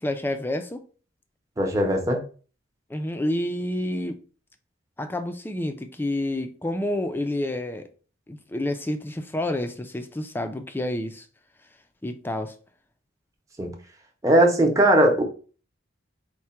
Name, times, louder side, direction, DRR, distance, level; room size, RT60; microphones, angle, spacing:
voice 1, 0.0-0.8 2.9-4.2 5.0-7.9 8.3-11.3 12.0-12.5, left 1 dB, 10° left, 0.4 m, -29 dB
voice 2, 1.6-2.2 13.6-13.7 14.2-15.2, right 1 dB, 15° right, 0.8 m, -19 dB
4.6 x 2.2 x 4.3 m
head